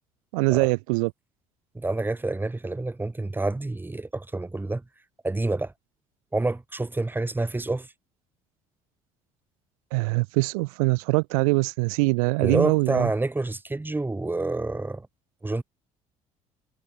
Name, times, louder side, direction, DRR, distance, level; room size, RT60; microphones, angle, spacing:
voice 1, 0.3-1.1 9.9-13.1, right 28 dB, 70° right, 0.5 m, -23 dB
voice 2, 1.7-4.8 5.2-5.7 6.3-7.9 12.4-15.1 15.4-15.6, right 2 dB, 10° right, 1.1 m, -28 dB
hypercardioid pair, 60°, 18 cm